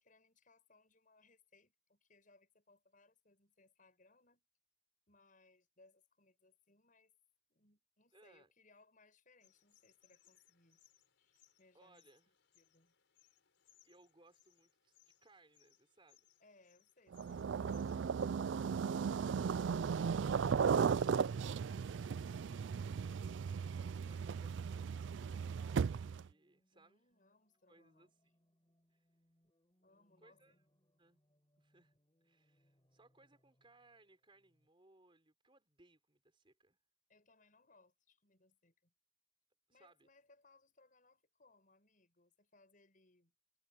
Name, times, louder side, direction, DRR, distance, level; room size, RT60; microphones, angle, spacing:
voice 1, 0.0-4.4 5.1-7.1 7.5-10.8 11.2-12.0 12.5-12.9 16.4-18.2 18.8-21.8 26.7-28.1 29.8-30.6 37.1-38.9 39.7-43.3, left 3 dB, 45° left, 7.4 m, -69 dB
voice 2, 8.1-8.5 11.7-12.3 13.8-16.3 20.9-22.2 23.7-27.1 27.7-28.1 28.9-29.1 30.2-30.6 31.0-31.2 31.6-31.9 32.2-36.8 39.7-40.1, right 2 dB, 30° right, 4.2 m, -67 dB
sound 1, 9.4-18.3, left 11 dB, 90° left, 4.9 m, -72 dB
sound 2, 17.1-26.3, right 6 dB, 80° right, 0.4 m, -36 dB
sound 3, 24.6-34.7, equal, 25° left, 5.4 m, -79 dB
head